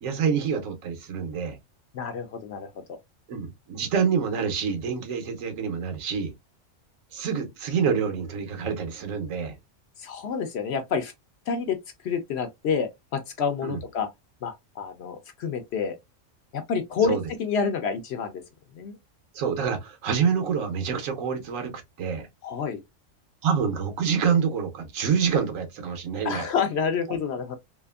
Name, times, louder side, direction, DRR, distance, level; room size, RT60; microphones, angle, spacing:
voice 1, 0.0-1.6 3.3-6.3 7.1-9.6 13.6-13.8 17.1-17.2 19.3-21.7 22.0-22.3 23.4-26.5, right 6 dB, 80° right, 1.2 m, -27 dB
voice 2, 1.9-2.7 10.0-11.1 11.5-11.8 12.0-14.1 14.4-16.0 16.5-18.4 18.7-19.0 22.4-22.8 26.2-27.5, left 6 dB, 65° left, 0.8 m, -28 dB
2.8 x 2.4 x 2.3 m
omnidirectional pair, 1.4 m